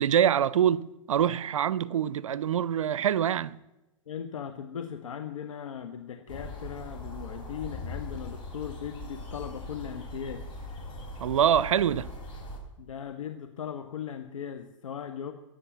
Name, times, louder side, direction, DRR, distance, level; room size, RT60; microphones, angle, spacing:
voice 1, 0.0-3.6 11.2-12.1, right 9 dB, 80° right, 0.5 m, -25 dB
voice 2, 4.1-10.5 12.8-15.3, left 8 dB, 80° left, 1.1 m, -38 dB
sound 1, 6.3-12.6, left 2 dB, 30° left, 4.5 m, -40 dB
17.0 x 8.4 x 7.3 m
hypercardioid pair, 125°, 17 cm